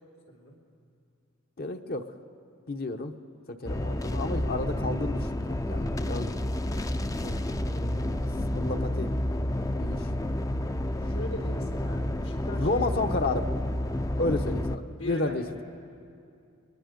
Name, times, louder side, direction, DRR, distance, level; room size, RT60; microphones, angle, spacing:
voice 1, 1.6-2.1 2.7-3.1 3.5-6.4 7.2-7.4 7.7-9.1 9.8-10.1 12.5-13.5 14.2-15.4, left 2 dB, 45° left, 7 dB, 1.0 m, -31 dB
sound 1, 3.7-14.8, left 1 dB, 15° left, 0.5 m, -30 dB
voice 2, 6.7-7.0 11.0-13.1 14.0-14.6 14.9-15.4, left 1 dB, 85° left, -1 dB, 4.0 m, -41 dB
29.5 x 21.0 x 5.2 m, 2.5 s
head